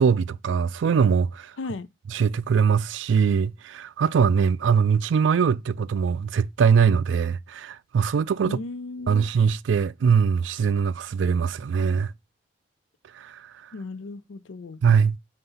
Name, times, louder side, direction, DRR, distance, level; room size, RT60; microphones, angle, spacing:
voice 1, 0.0-1.5 2.1-8.6 9.1-12.1 13.2-13.4 14.8-15.2, right 6 dB, 70° right, 0.3 m, -22 dB
voice 2, 1.6-1.9 8.4-9.3 13.7-14.8, left 3 dB, 75° left, 0.5 m, -35 dB
5.5 x 3.4 x 5.4 m
head